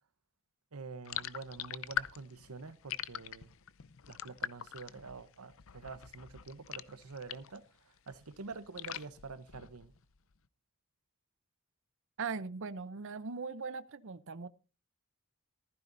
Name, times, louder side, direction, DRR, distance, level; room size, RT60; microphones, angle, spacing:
voice 1, 0.7-3.5 4.1-9.9, right 4 dB, 80° right, 0.9 m, -47 dB
sound 1, 1.1-7.6 8.0-10.0, left 10 dB, 65° left, 0.6 m, -43 dB
voice 2, 12.2-14.5, right 5 dB, 60° right, 0.7 m, -39 dB
15.5 x 14.5 x 2.6 m
head